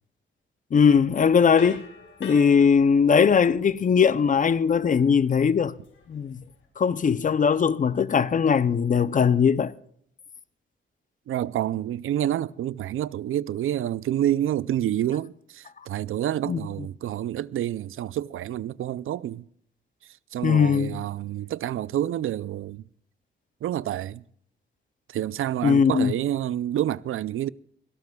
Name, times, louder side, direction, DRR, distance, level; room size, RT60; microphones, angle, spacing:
voice 1, 0.7-1.8 2.2-5.7 6.1-6.4 6.8-9.7 16.5-16.6 20.4-21.0 25.6-26.1, left 6 dB, 40° left, 0.5 m, -20 dB
sound 1, 1.5-6.7, left 3 dB, 75° left, 5.4 m, -46 dB
voice 2, 11.3-19.4 20.3-22.9 23.6-24.2 25.1-27.5, right 12 dB, 80° right, 0.4 m, -28 dB
23.5 x 18.0 x 2.3 m
wide cardioid pair, 120°, 21 cm